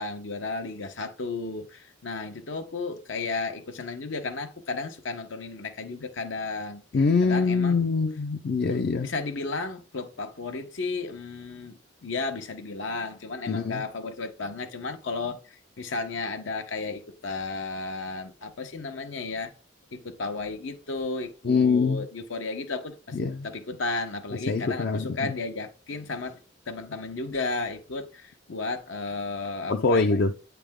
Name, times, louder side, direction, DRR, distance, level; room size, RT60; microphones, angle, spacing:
voice 1, 0.0-6.8 7.2-7.8 8.7-15.4 15.8-19.5 19.9-23.2 23.4-26.4 26.7-30.0, left 3 dB, 85° left, 0.9 m, -33 dB
voice 2, 6.9-9.1 13.5-13.8 21.4-22.1 23.1-23.5 24.5-25.3 29.7-30.3, left 4 dB, 55° left, 0.4 m, -24 dB
8.5 x 3.4 x 3.6 m
head